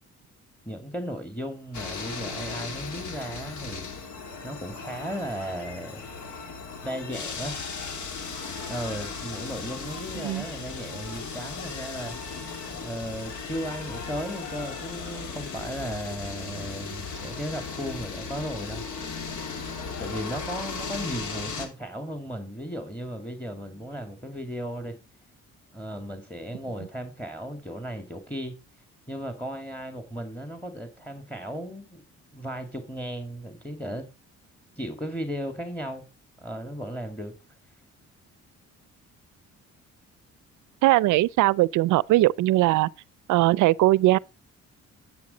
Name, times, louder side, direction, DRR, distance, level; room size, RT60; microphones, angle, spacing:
voice 1, 0.7-3.8 4.4-6.0 6.8-7.6 8.6-12.2 12.7-18.9 20.0-25.0 25.7-28.6 29.1-32.0 32.3-34.1 34.8-36.0 36.4-37.3, equal, 5° left, 1.8 m, -35 dB
sound 1, 1.7-21.7, left 5 dB, 75° left, 2.7 m, -36 dB
voice 2, 40.8-42.9 43.3-44.2, right 17 dB, 80° right, 0.5 m, -20 dB
10.5 x 8.5 x 3.9 m
cardioid pair, 90°, 30 cm